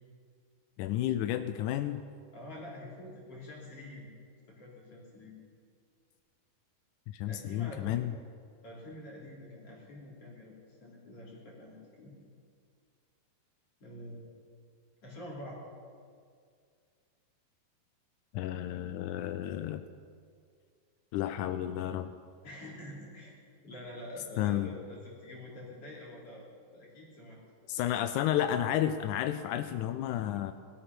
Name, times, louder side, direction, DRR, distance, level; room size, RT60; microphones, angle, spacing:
voice 1, 0.8-2.0 7.1-8.1 18.3-19.8 21.1-22.1 24.4-24.7 27.7-30.5, left 11 dB, 85° left, 10 dB, 1.7 m, -31 dB
voice 2, 2.3-4.1 4.5-5.3 7.3-8.0 8.6-12.1 13.8-14.3 15.0-15.6 22.4-23.4 23.6-26.5 26.7-27.4, left 1 dB, 40° left, -4 dB, 3.9 m, -46 dB
18.0 x 12.5 x 6.0 m, 2.1 s
omnidirectional pair, 4.1 m